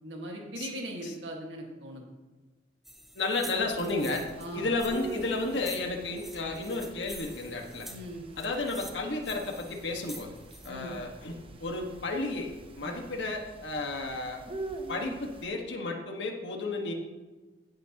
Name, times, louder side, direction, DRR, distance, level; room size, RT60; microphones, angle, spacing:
voice 1, 0.0-2.0 4.4-4.7 7.9-8.3 10.7-11.0 12.8-13.0, right 1 dB, 80° right, 0 dB, 1.7 m, -39 dB
sound 1, 2.8-10.7, equal, ahead, 0.8 m, -48 dB
voice 2, 3.1-4.2 4.5-7.9 8.4-10.3 10.6-14.4 14.9-16.9, left 3 dB, 75° left, 2 dB, 1.6 m, -32 dB
sound 2, 3.6-15.5, right 3 dB, 30° right, 0.9 m, -45 dB
15.5 x 8.3 x 3.0 m, 1.3 s
head